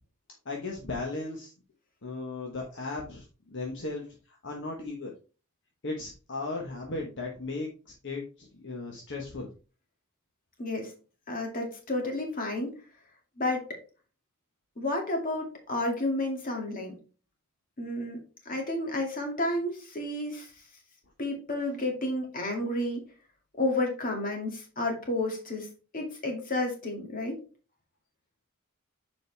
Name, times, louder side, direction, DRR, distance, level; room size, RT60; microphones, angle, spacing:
voice 1, 0.4-1.5 2.0-5.1 5.8-9.5 21.6-21.7, left 3 dB, 60° left, 0 dB, 1.2 m, -36 dB
voice 2, 10.6-10.9 11.3-12.7 13.4-13.7 14.8-16.9 17.8-20.5 21.2-23.0 23.6-25.7 25.9-27.4, left 1 dB, 40° left, 2 dB, 2.2 m, -31 dB
7.0 x 5.1 x 3.4 m, 0.35 s
head